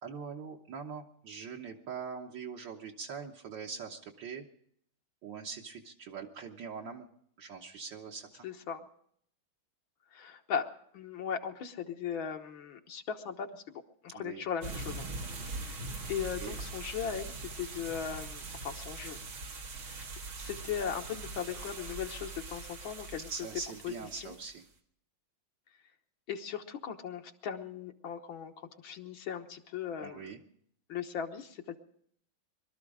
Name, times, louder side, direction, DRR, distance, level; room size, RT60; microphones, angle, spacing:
voice 1, 0.0-4.4 5.2-7.1 7.4-8.5 14.1-14.5 16.4-16.6 23.3-24.6 30.0-30.4, right 5 dB, 65° right, 0 dB, 1.9 m, -42 dB
voice 2, 8.4-8.8 10.1-10.7 10.9-13.6 14.0-15.1 15.4-15.8 16.1-19.2 19.9-20.0 20.3-23.3 23.8-24.3 26.3-30.3 30.9-31.8, left 7 dB, 75° left, 4 dB, 2.0 m, -38 dB
sound 1, 14.6-24.6, right 3 dB, 85° right, 2.8 m, -42 dB
23.0 x 13.0 x 4.9 m, 0.66 s
omnidirectional pair, 2.2 m